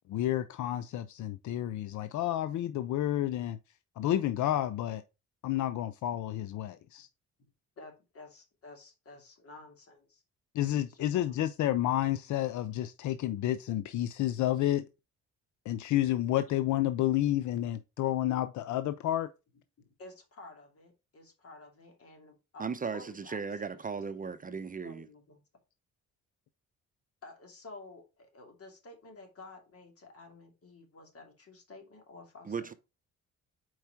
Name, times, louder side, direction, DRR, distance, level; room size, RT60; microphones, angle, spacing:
voice 1, 0.1-3.6 4.0-5.0 5.4-7.1 10.5-14.8 15.7-19.3, left 13 dB, 75° left, 0.5 m, -30 dB
voice 2, 7.8-10.2 10.9-11.4 19.8-22.6 22.9-23.8 24.5-24.6 24.8-25.4 27.2-32.7, left 2 dB, 50° left, 2.5 m, -52 dB
voice 3, 22.6-25.1 32.4-32.7, right 5 dB, 30° right, 0.7 m, -36 dB
4.8 x 4.4 x 5.7 m
cardioid pair, 90°, 30 cm